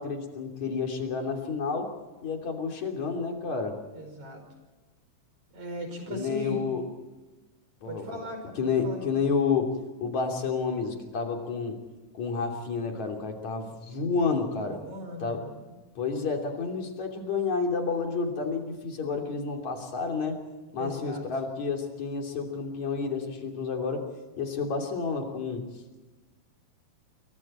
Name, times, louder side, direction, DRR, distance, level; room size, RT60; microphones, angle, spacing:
voice 1, 0.0-1.9 2.2-3.8 6.1-6.8 7.8-8.2 8.5-11.8 12.1-14.8 15.2-15.5 16.0-20.4 20.7-24.1 24.4-25.7, left 5 dB, 70° left, 3 dB, 4.4 m, -30 dB
voice 2, 3.9-4.4 5.5-6.7 7.8-9.1 14.6-15.6 20.8-21.2, equal, 75° right, 5 dB, 6.6 m, -38 dB
28.0 x 23.5 x 4.4 m, 1.2 s
omnidirectional pair, 3.4 m